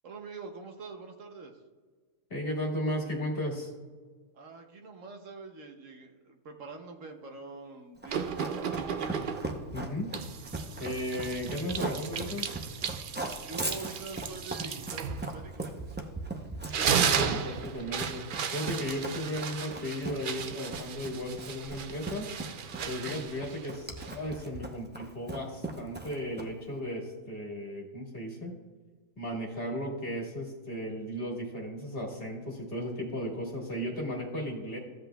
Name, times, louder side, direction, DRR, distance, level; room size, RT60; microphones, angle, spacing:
voice 1, 0.0-1.6 4.3-8.9 13.2-15.7 22.7-23.0, right 4 dB, 65° right, 3 dB, 1.1 m, -45 dB
voice 2, 2.3-3.7 9.7-10.1 10.8-12.5 17.0-22.3 22.9-28.5 29.2-34.8, equal, 40° left, -2 dB, 1.7 m, -35 dB
Run, 8.0-26.7, right 2 dB, 15° right, 0.3 m, -39 dB
sound 1, 8.1-9.6 10.1-16.2 16.5-24.4, right 7 dB, 80° right, 0.4 m, -35 dB
14.5 x 7.9 x 2.3 m, 1.5 s
omnidirectional pair, 1.5 m